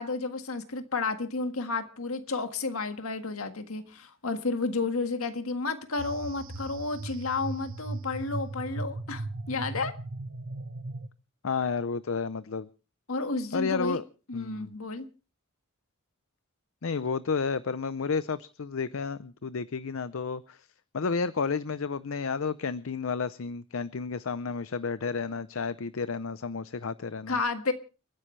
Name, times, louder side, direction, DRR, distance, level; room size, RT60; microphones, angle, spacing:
voice 1, 0.0-9.9 13.1-14.0 14.3-15.1 27.3-27.7, left 3 dB, 90° left, 1.7 m, -31 dB
sound 1, 6.0-11.1, right 2 dB, 70° right, 1.1 m, -37 dB
voice 2, 11.4-12.7 13.5-14.0 14.3-14.7 16.8-20.7 20.9-27.4, left 5 dB, 70° left, 0.6 m, -31 dB
30.0 x 10.0 x 3.2 m
head